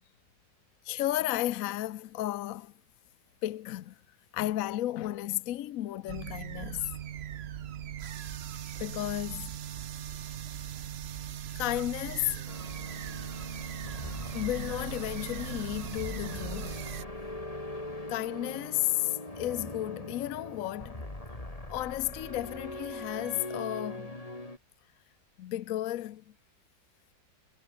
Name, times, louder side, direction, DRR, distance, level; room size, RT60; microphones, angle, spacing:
voice 1, 0.8-2.7 3.4-4.0 4.3-6.9 8.8-9.5 11.6-12.4 14.3-16.9 18.1-21.1 21.7-24.2 25.4-26.2, left 15 dB, 65° left, 0.8 m, -33 dB
sound 1, 6.1-17.0, right 10 dB, 90° right, 0.5 m, -39 dB
sound 2, 12.5-24.6, left 1 dB, 20° left, 3.5 m, -41 dB
omnidirectional pair, 2.0 m